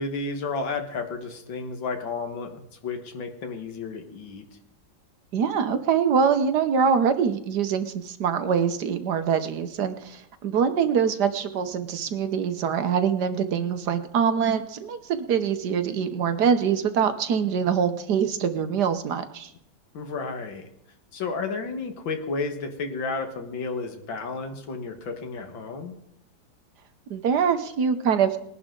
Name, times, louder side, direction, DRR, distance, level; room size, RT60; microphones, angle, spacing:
voice 1, 0.0-4.5 19.9-20.7 21.1-26.0, left 4 dB, 85° left, 5 dB, 2.3 m, -32 dB
voice 2, 5.3-19.5 27.1-28.4, right 7 dB, 65° right, 10 dB, 1.4 m, -24 dB
20.0 x 10.5 x 3.8 m, 0.78 s
omnidirectional pair, 2.0 m